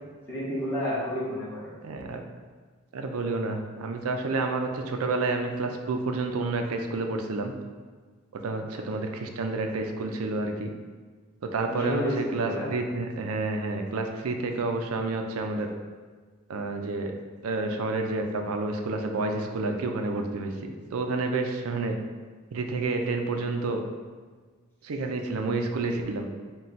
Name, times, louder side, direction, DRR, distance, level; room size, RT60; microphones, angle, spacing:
voice 1, 0.3-1.7 8.7-9.1 11.7-12.7, equal, 10° left, -9 dB, 1.2 m, -31 dB
voice 2, 1.8-2.2 2.9-7.5 8.3-10.7 11.4-15.7 16.5-17.1 17.4-21.9 22.5-23.8 24.8-26.3, right 3 dB, 75° right, 4 dB, 0.4 m, -29 dB
4.3 x 2.3 x 3.9 m, 1.4 s
head